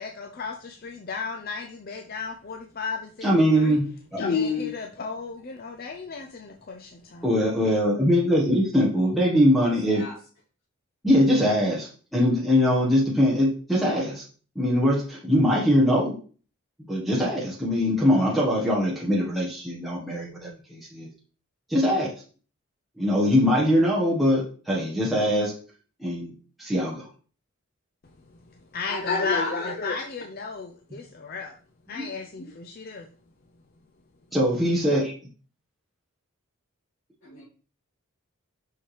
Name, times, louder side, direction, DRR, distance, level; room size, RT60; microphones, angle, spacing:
voice 1, 0.0-3.8 4.2-7.3 28.7-31.5 31.9-33.1, left 4 dB, 40° left, 4 dB, 0.5 m, -32 dB
voice 2, 3.2-4.2 7.2-10.0 11.0-14.2 14.5-16.2 16.9-21.1 21.7-22.1 23.0-25.5 26.0-26.3 26.6-27.1 31.9-32.1 34.3-35.1, equal, ahead, -5 dB, 1.2 m, -22 dB
voice 3, 9.6-10.1 28.9-29.8 37.2-37.4, left 2 dB, 65° left, -9 dB, 2.4 m, -36 dB
5.8 x 5.5 x 3.2 m, 0.39 s
head